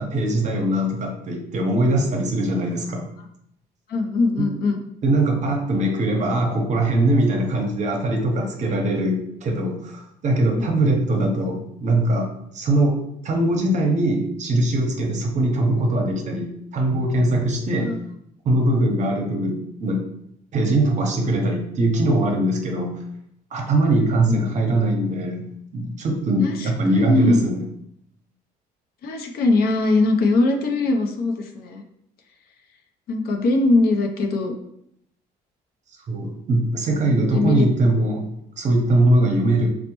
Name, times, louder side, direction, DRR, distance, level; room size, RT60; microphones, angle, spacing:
voice 1, 0.0-3.1 4.4-4.5 5.0-13.0 13.2-17.9 18.4-20.0 20.5-23.0 23.5-25.5 25.7-27.6 36.1-38.3 38.6-39.7, right 1 dB, 45° right, 2 dB, 0.7 m, -21 dB
voice 2, 3.9-4.8 10.5-10.7 17.8-18.0 24.0-24.4 26.4-27.4 29.0-31.8 33.1-34.5 37.1-37.7, left 2 dB, 65° left, 4 dB, 0.5 m, -21 dB
4.2 x 2.1 x 2.9 m, 0.74 s
cardioid pair, 110°, 17 cm